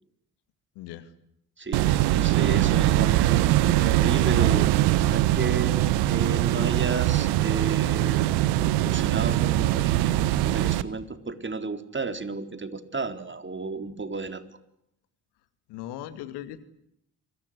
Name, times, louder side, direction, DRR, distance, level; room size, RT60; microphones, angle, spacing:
voice 1, 0.8-1.1 1.8-2.0 15.7-16.6, left 12 dB, 70° left, 12 dB, 2.5 m, -39 dB
voice 2, 1.6-4.7 5.0-14.4, right 3 dB, 25° right, 9 dB, 4.2 m, -32 dB
sound 1, 1.7-10.8, right 15 dB, 70° right, 1.4 m, -22 dB
28.5 x 24.0 x 8.3 m, 0.76 s
figure-of-eight pair, 40°, 41 cm